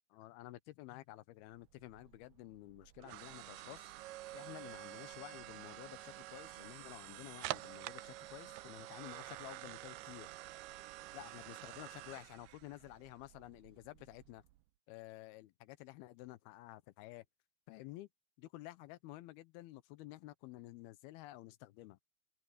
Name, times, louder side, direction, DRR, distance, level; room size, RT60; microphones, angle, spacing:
voice 1, 0.1-3.9 4.3-10.3 11.1-14.4 14.9-17.3 17.7-18.1 18.4-22.0, left 17 dB, 80° left, 2.6 m, -52 dB
sound 1, 1.5-14.6, right 17 dB, 80° right, 2.5 m, -49 dB
open air
omnidirectional pair, 4.7 m